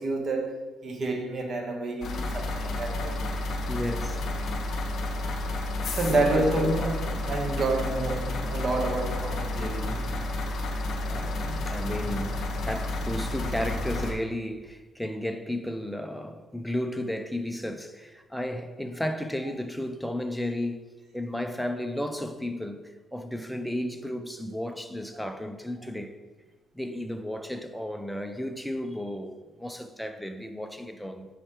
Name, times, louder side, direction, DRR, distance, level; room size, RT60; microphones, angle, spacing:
voice 1, 0.0-3.2 5.9-10.2, right 2 dB, 40° right, 1.3 m, -29 dB
sound 1, 2.0-14.1, left 2 dB, 55° left, 0.9 m, -31 dB
voice 2, 3.7-4.2 6.1-6.4 11.0-20.9 21.1-26.2 26.7-31.3, left 1 dB, ahead, 0.5 m, -33 dB
5.4 x 4.9 x 4.4 m
cardioid pair, 115°, 0 cm